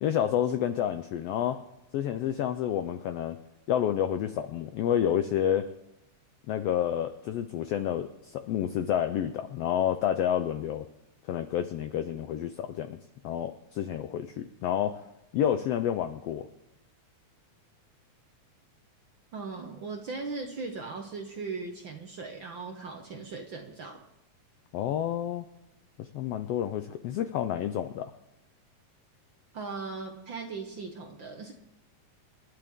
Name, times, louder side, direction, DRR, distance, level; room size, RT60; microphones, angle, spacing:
voice 1, 0.0-1.6 1.9-3.4 3.7-5.6 6.5-10.9 11.3-13.0 13.2-15.0 15.3-16.5 24.7-25.4 26.0-28.1, left 10 dB, 80° left, 10 dB, 1.4 m, -29 dB
voice 2, 19.3-24.0 29.5-31.5, right 4 dB, 60° right, 3 dB, 1.3 m, -38 dB
28.0 x 11.5 x 3.6 m, 0.92 s
omnidirectional pair, 3.4 m